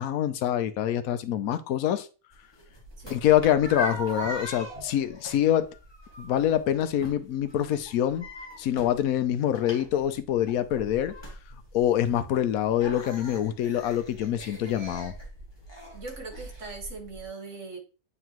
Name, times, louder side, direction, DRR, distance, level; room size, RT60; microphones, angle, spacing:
voice 1, 0.0-2.1 3.1-5.7 6.2-8.3 8.6-11.1 11.7-15.1, left 11 dB, 85° left, 1.1 m, -25 dB
sound 1, 2.3-17.3, left 1 dB, 20° left, 1.6 m, -41 dB
voice 2, 15.9-17.8, right 3 dB, 60° right, 2.0 m, -40 dB
9.1 x 3.8 x 3.0 m
omnidirectional pair, 1.4 m